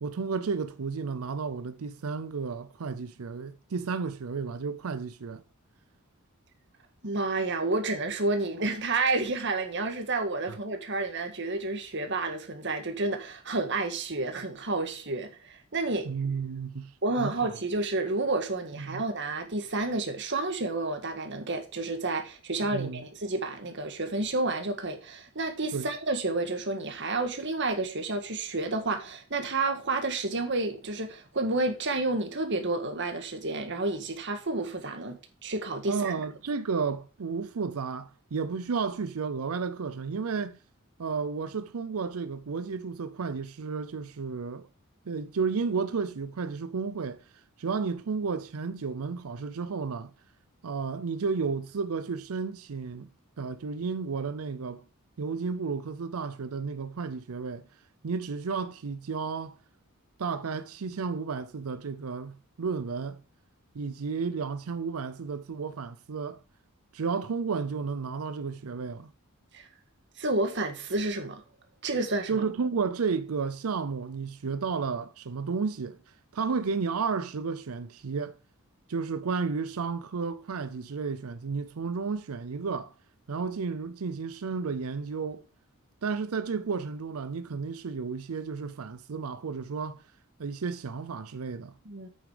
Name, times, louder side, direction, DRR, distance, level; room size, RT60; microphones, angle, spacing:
voice 1, 0.0-5.4 16.1-17.5 18.8-19.0 22.7-23.0 25.7-25.9 35.9-40.6 41.0-44.7 45.1-47.2 47.6-50.1 50.6-53.1 53.4-54.8 55.2-57.6 58.0-59.5 60.2-63.2 63.7-66.4 66.9-69.1 72.3-76.0 76.3-78.4 78.9-82.9 83.3-85.4 86.0-90.0 90.4-91.7, right 5 dB, 85° right, 0.5 m, -32 dB
voice 2, 7.0-16.1 17.0-36.1 69.5-69.7 70.2-71.4 71.8-72.4 91.9-92.1, right 2 dB, 55° right, 1.8 m, -30 dB
8.7 x 6.9 x 5.0 m
head